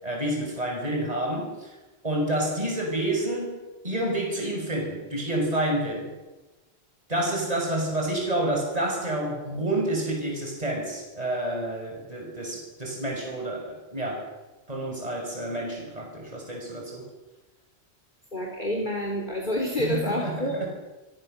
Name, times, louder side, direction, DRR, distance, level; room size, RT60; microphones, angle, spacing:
voice 1, 0.0-1.7 2.0-3.6 3.8-6.1 7.1-14.3 14.7-17.1 19.8-20.7, right 1 dB, 35° right, 0 dB, 6.1 m, -29 dB
voice 2, 18.3-20.6, equal, 45° left, 0 dB, 3.6 m, -28 dB
27.5 x 23.0 x 6.7 m, 1.1 s
omnidirectional pair, 1.1 m